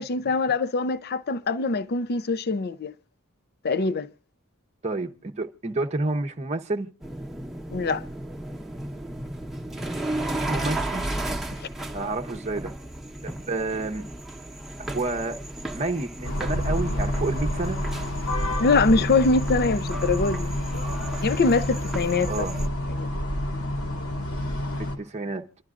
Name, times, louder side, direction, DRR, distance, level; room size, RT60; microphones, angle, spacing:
voice 1, 0.0-2.9 3.6-4.1 7.7-8.0 18.6-20.5 21.2-22.5 23.0-23.1, left 3 dB, 45° left, 0.6 m, -23 dB
voice 2, 4.8-6.9 10.3-11.1 11.9-12.7 13.2-14.1 14.8-15.4 15.7-17.8 22.3-22.6 24.8-25.4, right 2 dB, 30° right, 0.8 m, -29 dB
sound 1, 7.0-22.7, right 1 dB, ahead, 1.0 m, -35 dB
sound 2, 16.2-25.0, left 1 dB, 85° left, 2.6 m, -28 dB
27.0 x 12.0 x 2.5 m
head